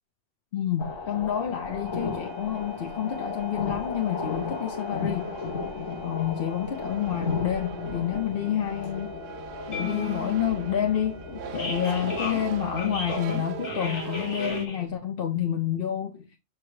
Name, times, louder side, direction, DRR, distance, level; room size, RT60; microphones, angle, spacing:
voice 1, 0.5-5.3 6.0-9.1 9.7-16.4, left 10 dB, 55° left, 0.9 m, -29 dB
sound 1, 0.8-14.9, left 4 dB, 70° left, 1.6 m, -34 dB
sound 2, 1.9-14.7, right 8 dB, 90° right, 1.1 m, -41 dB
6.6 x 5.0 x 3.1 m
omnidirectional pair, 1.2 m